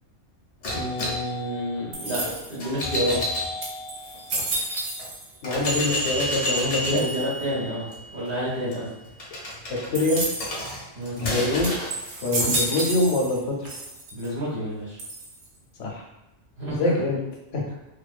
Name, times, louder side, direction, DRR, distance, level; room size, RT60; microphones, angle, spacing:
sound 1, 0.6-4.4 5.0-5.1 5.4-12.0, left 1 dB, 50° left, 0.6 m, -31 dB
voice 1, 0.7-2.2 2.5-3.2 6.8-8.9 10.9-11.2 12.3-12.5 14.1-15.0 16.6-16.8, equal, 50° right, -8 dB, 1.1 m, -29 dB
sound 2, 1.9-2.7 3.2-3.3 3.6-5.4 5.6-6.2 7.0-7.4 10.0-10.6 11.2-11.3 11.6-13.4 13.7-14.3 15.0-15.6, right 2 dB, 90° right, 1.0 m, -31 dB
voice 2, 5.4-7.1 9.9-10.2 11.2-11.9 12.2-13.6 15.8-16.0 16.7-17.2 17.5-17.6, left 2 dB, 80° left, -1 dB, 0.9 m, -24 dB
2.6 x 2.2 x 2.4 m, 0.92 s
omnidirectional pair, 1.3 m